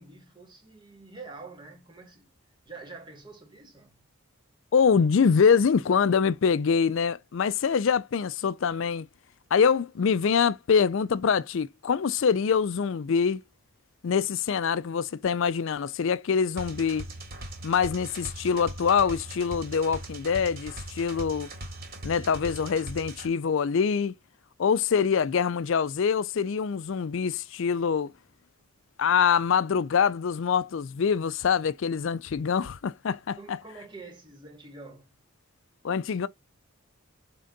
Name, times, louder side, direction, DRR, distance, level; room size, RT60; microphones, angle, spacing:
voice 1, 0.0-2.3 2.6-4.0 33.4-35.1, right 3 dB, 20° right, 2.2 m, -46 dB
voice 2, 4.7-9.1 9.5-13.4 14.0-17.1 17.6-21.5 22.0-24.1 24.6-28.1 29.0-33.6 35.8-36.3, left 6 dB, 60° left, 0.4 m, -24 dB
sound 1, 16.6-23.3, right 1 dB, 40° right, 2.6 m, -40 dB
7.8 x 3.7 x 3.9 m
head